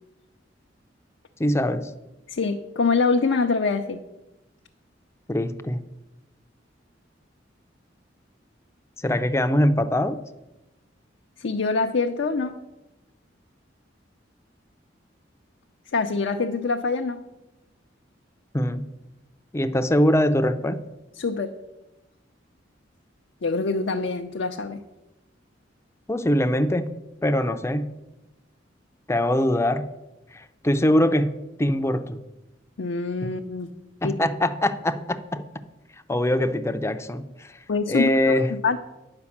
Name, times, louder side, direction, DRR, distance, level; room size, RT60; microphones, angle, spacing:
voice 1, 1.4-1.9 5.3-5.8 9.0-10.2 18.5-18.8 19.5-20.8 26.1-26.9 27.2-27.9 29.1-29.9 30.3-32.2 34.0-35.4 36.1-37.6 37.9-38.5, left 1 dB, 15° left, 9 dB, 0.5 m, -23 dB
voice 2, 2.3-4.0 11.4-12.6 15.9-17.2 21.2-21.5 23.4-24.8 32.8-33.7 34.0-34.2 37.7-38.4 38.6-38.8, left 4 dB, 70° left, 3 dB, 0.6 m, -25 dB
9.7 x 5.2 x 7.1 m, 0.99 s
head